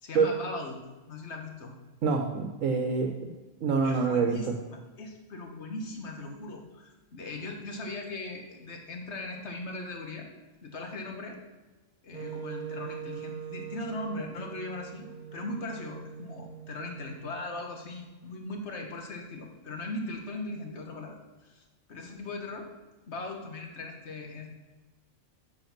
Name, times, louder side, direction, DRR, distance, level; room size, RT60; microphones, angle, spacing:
voice 1, 0.0-0.8 1.1-1.7 3.8-4.5 5.0-10.3 10.6-11.4 12.0-21.6 21.9-22.7 23.1-24.5, left 2 dB, 60° left, 2 dB, 1.7 m, -39 dB
voice 2, 2.0-3.1 3.6-4.5, right 5 dB, 80° right, 3 dB, 1.3 m, -26 dB
Wind instrument woodwind instrument, 12.1-18.2, right 10 dB, 40° right, 0.7 m, -43 dB
7.9 x 6.7 x 5.9 m, 1.2 s
omnidirectional pair, 1.3 m